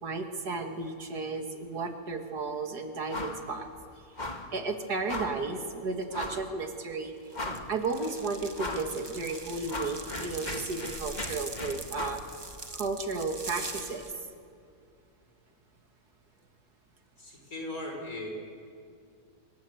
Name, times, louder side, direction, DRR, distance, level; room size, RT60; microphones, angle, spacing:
voice 1, 0.0-3.7 4.5-7.1 7.7-12.2 12.7-14.1, right 3 dB, 90° right, 5 dB, 2.7 m, -33 dB
sound 1, 3.1-3.5 3.7-3.8 4.2-4.5 5.1-5.4 6.1-6.5 6.9-7.0 7.3-7.9 8.6-8.9 9.3-12.3, left 2 dB, 30° left, 1.9 m, -37 dB
sound 2, 7.3-14.1, right 2 dB, 15° right, 1.2 m, -42 dB
voice 2, 17.2-18.3, left 1 dB, 65° left, 0 dB, 6.2 m, -38 dB
26.5 x 24.5 x 8.1 m, 2.4 s
omnidirectional pair, 1.6 m